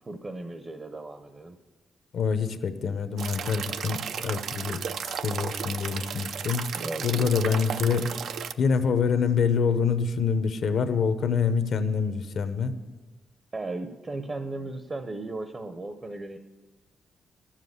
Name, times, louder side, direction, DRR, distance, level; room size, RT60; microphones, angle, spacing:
voice 1, 0.0-1.6 6.7-7.6 13.5-16.4, right 2 dB, 25° right, 8 dB, 0.7 m, -36 dB
voice 2, 2.1-4.8 5.2-6.7 7.0-8.1 8.6-12.7, left 6 dB, 60° left, 10 dB, 0.9 m, -26 dB
sound 1, 3.2-8.5, right 7 dB, 75° right, 0.5 m, -34 dB
12.0 x 7.4 x 8.1 m, 1.2 s
cardioid pair, 130°, 0 cm